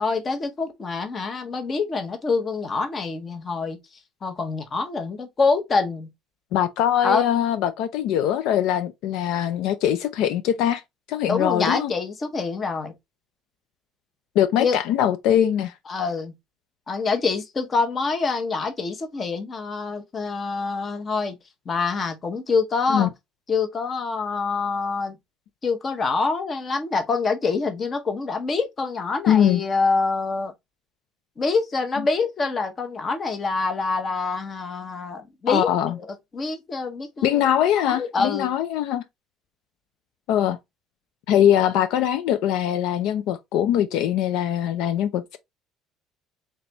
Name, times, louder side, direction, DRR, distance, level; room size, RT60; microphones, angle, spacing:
voice 1, 0.0-3.8 4.2-6.1 7.0-7.2 11.3-12.9 14.6-14.8 15.9-16.3 16.9-21.4 21.7-23.1 23.5-25.2 25.6-30.5 31.4-35.7 36.3-37.4 37.9-38.5, left 4 dB, 20° left, 0.8 m, -25 dB
voice 2, 6.5-10.8 11.1-11.9 14.4-15.7 22.9-23.1 29.3-29.6 35.5-35.9 37.2-39.0 40.3-40.6 41.3-45.4, left 10 dB, 60° left, 0.4 m, -22 dB
4.0 x 3.4 x 3.0 m
cardioid pair, 175°, 0 cm